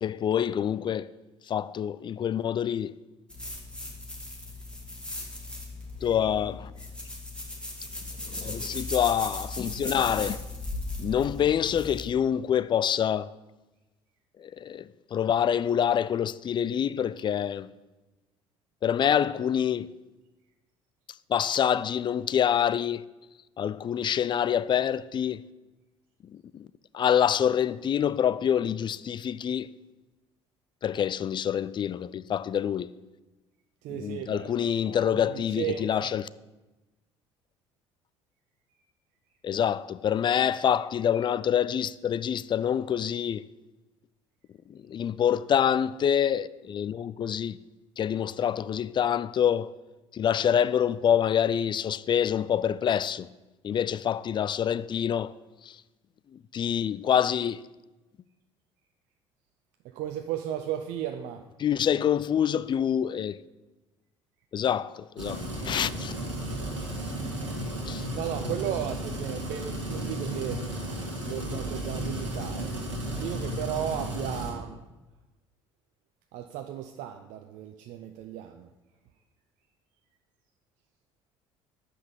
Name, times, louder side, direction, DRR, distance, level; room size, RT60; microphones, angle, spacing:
voice 1, 0.0-1.1 1.5-3.0 6.0-6.7 8.3-10.4 11.0-13.3 14.4-17.7 18.8-19.9 21.3-23.0 23.6-25.4 26.2-26.7 26.9-29.7 30.8-32.9 33.9-36.3 39.4-43.5 44.7-47.6 48.0-49.7 50.1-53.3 53.6-55.3 55.6-55.8 56.3-57.6 61.6-63.4 64.5-66.1 67.9-68.1, left 9 dB, 30° left, 0.4 m, -26 dB
sound 1, 3.3-12.0, left 1 dB, 5° left, 2.1 m, -37 dB
voice 2, 33.8-34.5 34.8-36.1 59.8-61.4 67.1-67.5 68.1-70.7 71.3-74.8 76.3-78.7, right 10 dB, 55° right, 0.6 m, -35 dB
sound 2, 65.2-74.5, right 1 dB, 90° right, 1.6 m, -34 dB
7.6 x 5.8 x 6.8 m
figure-of-eight pair, 55°, 15 cm